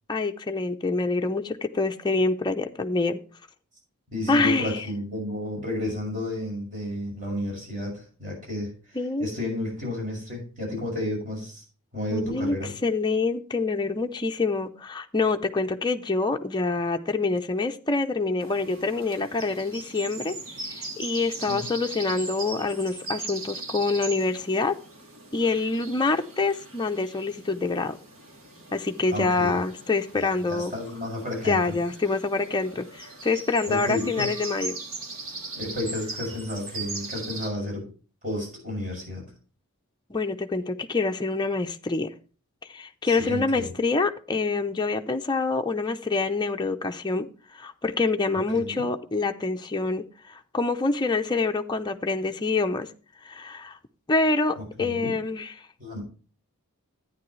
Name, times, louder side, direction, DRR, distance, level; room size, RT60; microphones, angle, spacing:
voice 1, 0.1-3.2 4.3-4.8 9.0-9.3 12.1-12.6 12.8-20.3 20.8-24.8 25.3-28.0 28.7-30.7 31.5-34.8 40.1-42.1 42.7-47.3 47.5-52.9 53.2-53.8 54.1-55.5, left 3 dB, 20° left, 4 dB, 0.6 m, -26 dB
voice 2, 4.1-11.6 11.9-12.7 21.5-21.6 29.1-29.6 30.1-31.7 33.6-34.3 35.6-37.8 38.2-39.2 43.0-43.7 48.5-48.9 54.6-55.1 55.8-56.0, left 1 dB, 40° right, -1 dB, 6.6 m, -32 dB
sound 1, 18.4-37.5, right 3 dB, 65° right, 2.9 m, -39 dB
11.0 x 9.4 x 3.1 m, 0.37 s
head